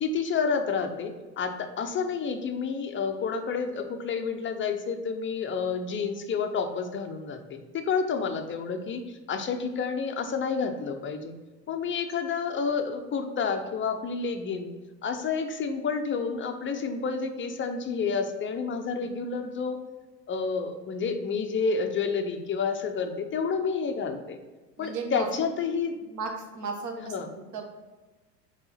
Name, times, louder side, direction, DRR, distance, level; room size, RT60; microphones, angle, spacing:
voice 1, 0.0-9.0 9.3-11.3 11.7-14.7 15.0-19.8 20.3-24.4 24.8-26.0 27.0-27.3, left 5 dB, 25° left, 6 dB, 0.6 m, -29 dB
voice 2, 24.8-25.5 26.1-27.8, right 4 dB, 35° right, 3 dB, 1.2 m, -36 dB
4.4 x 4.0 x 5.6 m, 1.2 s
hypercardioid pair, 80°, 48 cm